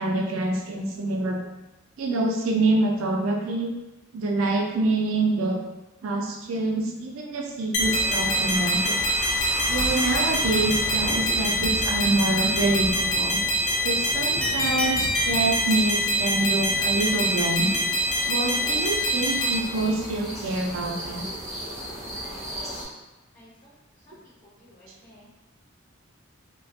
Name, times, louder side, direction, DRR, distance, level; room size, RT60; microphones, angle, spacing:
voice 1, 0.0-1.4 2.0-3.7 4.1-5.6 6.0-9.0 9.7-13.4 13.8-17.7 18.3-21.3, right 2 dB, 80° right, 1 dB, 0.4 m, -26 dB
sound 1, 7.7-19.6, equal, 65° left, 0.6 m, -25 dB
sound 2, 7.8-22.9, equal, 15° right, 0.8 m, -35 dB
voice 2, 23.3-23.7 24.1-25.3, left 1 dB, 40° left, -10 dB, 1.3 m, -54 dB
2.4 x 2.2 x 2.5 m, 1.0 s
head